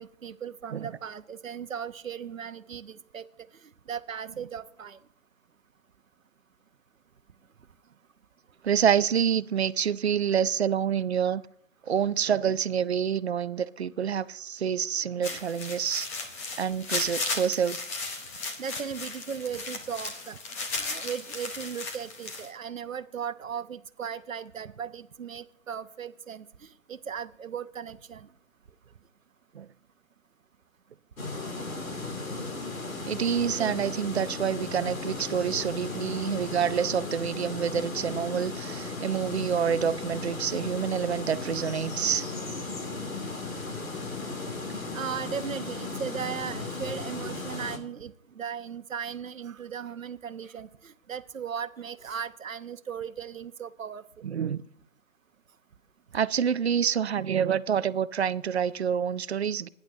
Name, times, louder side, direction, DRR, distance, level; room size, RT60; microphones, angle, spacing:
voice 1, 0.0-3.3 3.9-5.0 15.3-15.4 18.6-20.4 20.8-28.3 33.3-33.8 44.9-54.0, right 7 dB, 80° right, 0.9 m, -37 dB
voice 2, 8.6-11.4 11.8-16.1 16.6-17.8 29.5-29.7 33.1-42.3 54.2-54.6 56.1-59.7, right 8 dB, 55° right, 0.6 m, -27 dB
Feet in leafs, 15.2-22.5, left 3 dB, 10° left, 0.7 m, -35 dB
sound 1, 31.2-47.8, left 3 dB, 85° left, 2.7 m, -36 dB
18.5 x 10.5 x 2.7 m
figure-of-eight pair, 150°, 39 cm